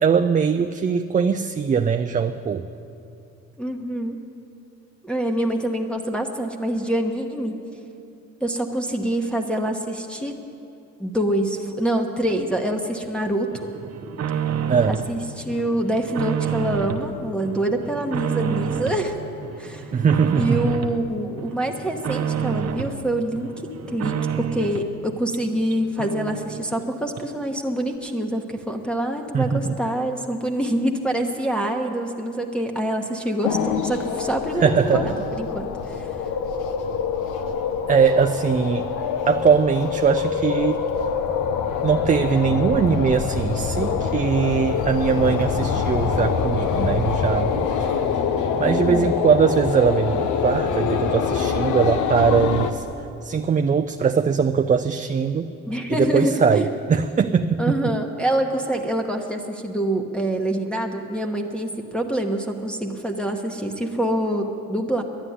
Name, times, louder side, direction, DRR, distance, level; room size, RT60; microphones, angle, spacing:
voice 1, 0.0-2.6 14.7-15.0 19.9-20.7 29.3-29.8 34.6-35.3 37.9-38.9 39.3-40.9 41.8-47.7 48.6-52.9 53.2-55.5 55.9-57.9, right 6 dB, 25° right, 7 dB, 0.4 m, -21 dB
voice 2, 3.6-4.2 5.0-7.6 8.4-10.3 11.0-13.7 14.9-19.2 19.6-19.9 20.3-36.1 48.6-49.1 55.7-56.7 57.6-65.0, right 1 dB, 5° left, 0 dB, 1.1 m, -26 dB
sound 1, 13.5-15.1 15.5-17.1 17.4-19.1 19.4-21.0 21.4-23.0 23.3-24.9 25.3-25.4 25.7-25.8 26.0-26.8 27.2-27.3, right 7 dB, 55° right, 0.9 m, -28 dB
sound 2, 33.4-52.7, left 6 dB, 85° left, 0.9 m, -25 dB
11.5 x 9.7 x 9.5 m, 2.6 s
cardioid pair, 90°, 30 cm